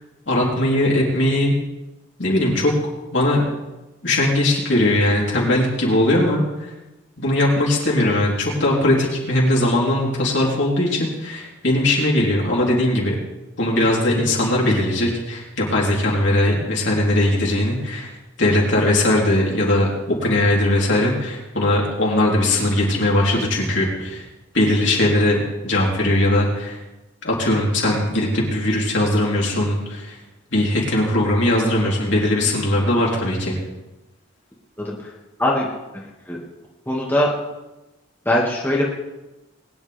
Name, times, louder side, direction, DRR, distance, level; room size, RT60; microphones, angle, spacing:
voice 1, 0.3-1.5 2.2-2.7 3.1-3.4 4.0-6.7 7.2-13.2 13.6-18.1 18.4-24.2 24.5-26.8 27.2-30.2 30.5-33.6, left 1 dB, 60° left, -3 dB, 3.7 m, -19 dB
voice 2, 34.8-35.1 35.4-35.7 35.9-36.4 36.9-37.3 38.3-38.8, left 1 dB, 10° left, -5 dB, 2.0 m, -21 dB
21.5 x 10.5 x 3.5 m, 1.0 s
head